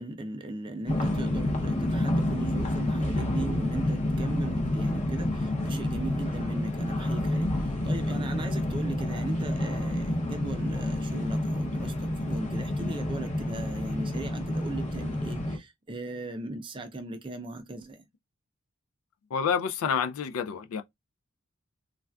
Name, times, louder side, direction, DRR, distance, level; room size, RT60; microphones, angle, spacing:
voice 1, 0.0-18.0, right 2 dB, 25° right, 0.4 m, -38 dB
sound 1, 0.9-15.6, left 1 dB, 35° left, 0.6 m, -29 dB
voice 2, 19.3-20.8, left 6 dB, 90° left, 0.4 m, -28 dB
3.3 x 2.4 x 2.2 m
head